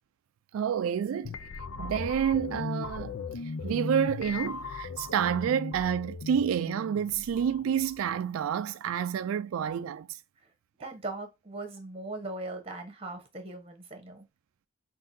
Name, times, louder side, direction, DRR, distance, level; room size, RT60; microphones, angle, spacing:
voice 1, 0.5-1.3 1.8-3.1 3.4-10.2, right 8 dB, 85° right, 0.3 m, -29 dB
sound 1, 1.2-8.1, left 4 dB, 80° left, 0.5 m, -38 dB
voice 2, 10.8-14.2, right 2 dB, 25° right, 1.1 m, -39 dB
5.6 x 2.7 x 2.6 m
head